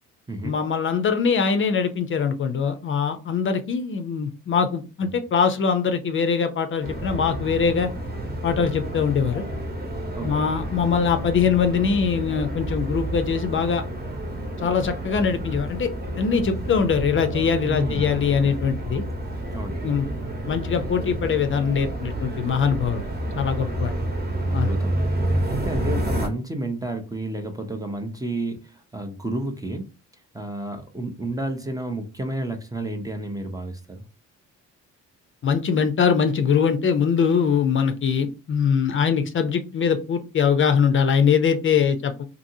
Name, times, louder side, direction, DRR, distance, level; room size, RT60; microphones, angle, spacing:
voice 1, 0.4-7.9 8.4-9.4 10.2-13.8 14.6-15.9 16.2-19.0 19.8-20.1 20.5-23.1 23.3-23.9 24.5-24.7 35.4-42.2, left 6 dB, 40° left, 0.5 m, -22 dB
sound 1, 6.8-26.3, right 1 dB, 35° right, 1.0 m, -29 dB
voice 2, 10.0-10.4 17.7-18.2 19.5-20.2 23.5-23.7 24.5-29.9 30.3-34.0, right 1 dB, 10° right, 0.5 m, -31 dB
2.7 x 2.6 x 2.6 m
cardioid pair, 90°, 30 cm